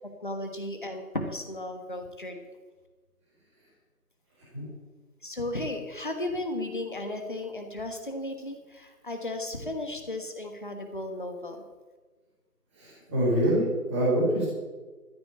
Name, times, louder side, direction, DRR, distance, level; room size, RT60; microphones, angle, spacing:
voice 1, 0.2-2.4 5.2-11.6, left 1 dB, 30° left, 5 dB, 1.3 m, -35 dB
voice 2, 12.8-14.5, right 1 dB, 10° right, -12 dB, 2.4 m, -25 dB
13.5 x 6.0 x 8.7 m, 1.3 s
figure-of-eight pair, 170°, 47 cm